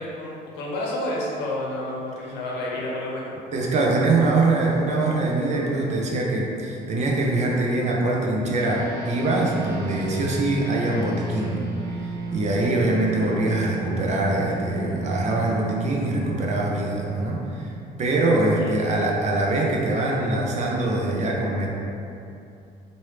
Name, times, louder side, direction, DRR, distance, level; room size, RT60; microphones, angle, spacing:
voice 1, 0.0-3.3 18.6-18.9, left 1 dB, 90° left, -3 dB, 0.7 m, -30 dB
voice 2, 3.5-11.6 12.3-17.7 18.0-21.7, right 2 dB, 45° right, -2 dB, 0.6 m, -23 dB
sound 1, 8.6-18.3, right 4 dB, 65° right, 1.3 m, -34 dB
3.1 x 2.6 x 3.1 m, 2.6 s
cardioid pair, 110°, 17 cm